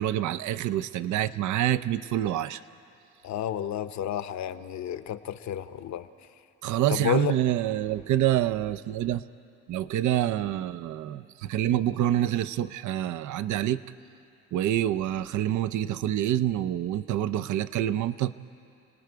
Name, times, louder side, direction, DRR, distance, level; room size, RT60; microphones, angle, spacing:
voice 1, 0.0-2.6 6.6-9.2 9.7-13.8 14.5-18.3, right 12 dB, 75° right, 13 dB, 0.6 m, -27 dB
voice 2, 3.2-6.1 6.9-7.4, left 10 dB, 65° left, 12 dB, 0.8 m, -31 dB
29.5 x 19.0 x 4.6 m, 2.6 s
cardioid pair, 90°, 30 cm